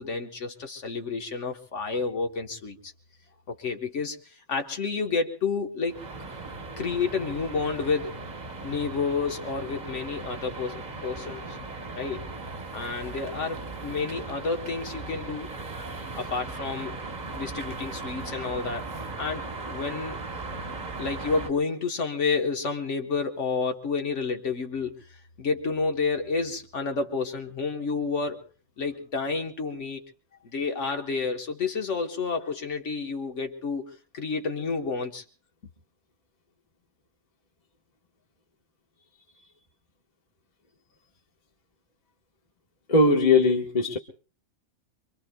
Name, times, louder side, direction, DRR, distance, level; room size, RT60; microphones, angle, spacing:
voice 1, 0.0-2.9 3.5-6.0 6.8-8.2 8.6-11.6 11.9-12.2 12.7-15.5 16.2-20.2 21.0-28.4 28.8-30.0 30.4-35.2, left 4 dB, 65° left, 4 dB, 1.4 m, -30 dB
sound 1, 5.8-21.5, right 3 dB, 35° right, 1.1 m, -38 dB
voice 2, 42.9-44.0, left 2 dB, 35° left, 2 dB, 1.4 m, -20 dB
25.0 x 24.0 x 2.2 m, 0.38 s
omnidirectional pair, 1.3 m